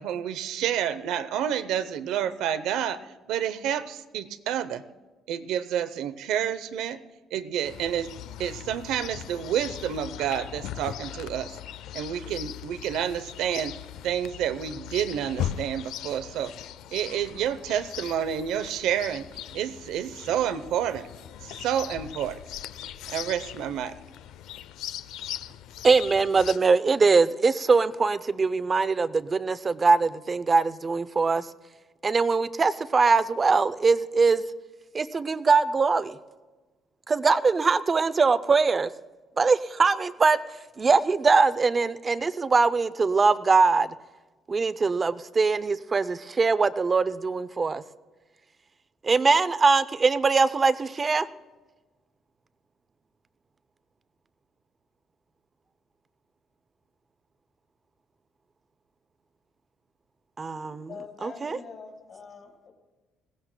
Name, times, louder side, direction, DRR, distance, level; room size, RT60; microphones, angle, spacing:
voice 1, 0.0-4.8 5.3-7.0 7.3-8.1 8.4-11.6 11.9-13.8 14.0-16.5 16.9-19.3 19.5-21.1 21.4-22.4 23.1-23.9, right 9 dB, 85° right, 13 dB, 0.7 m, -29 dB
Chirp tweet, 7.6-26.6, left 11 dB, 85° left, 0.4 m, -39 dB
voice 2, 25.8-31.5 32.0-34.4 34.9-36.2 37.1-38.9 39.4-40.4 40.8-43.9 44.5-47.8 49.0-51.3 60.4-60.9 61.2-61.6, right 4 dB, 25° right, 15 dB, 0.4 m, -22 dB
voice 3, 60.7-62.7, left 5 dB, 45° left, 0 dB, 3.7 m, -44 dB
20.5 x 17.0 x 2.2 m, 1.2 s
cardioid pair, 145°, 0 cm